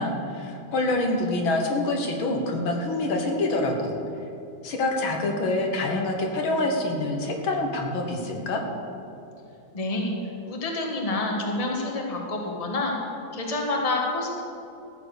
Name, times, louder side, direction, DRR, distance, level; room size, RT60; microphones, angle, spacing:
voice 1, 0.0-3.9 4.6-8.6, left 2 dB, 75° left, 2 dB, 2.2 m, -26 dB
voice 2, 9.7-10.1 10.5-12.9 13.3-14.4, left 2 dB, 20° left, 0 dB, 1.5 m, -28 dB
14.5 x 7.6 x 6.5 m, 2.7 s
omnidirectional pair, 2.2 m